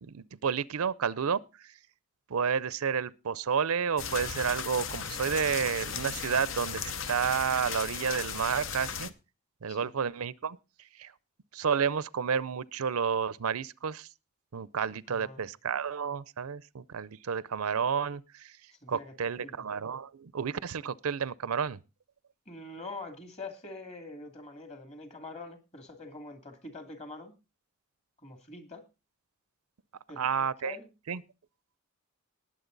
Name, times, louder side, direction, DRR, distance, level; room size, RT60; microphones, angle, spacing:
voice 1, 0.0-1.4 2.3-9.1 9.6-10.6 11.0-11.1 11.5-14.1 14.5-18.5 18.9-21.8 30.2-30.8 31.1-31.2, right 6 dB, 90° right, 0.6 m, -31 dB
sound 1, 4.0-9.1, left 7 dB, 65° left, 0.8 m, -36 dB
voice 2, 15.1-15.4 18.8-19.5 22.5-27.3 28.2-28.8 30.1-30.9, left 2 dB, 30° left, 2.5 m, -44 dB
19.5 x 7.6 x 3.9 m
head